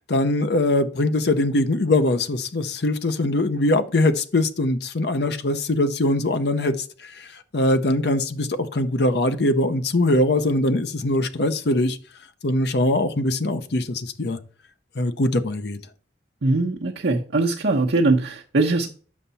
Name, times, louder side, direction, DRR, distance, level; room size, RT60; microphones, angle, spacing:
voice 1, 0.0-6.7 7.0-12.0 12.4-14.4 15.0-15.8, left 1 dB, 65° left, 0.7 m, -22 dB
voice 2, 16.4-18.9, right 2 dB, 75° right, 0.9 m, -21 dB
7.3 x 5.7 x 4.1 m
head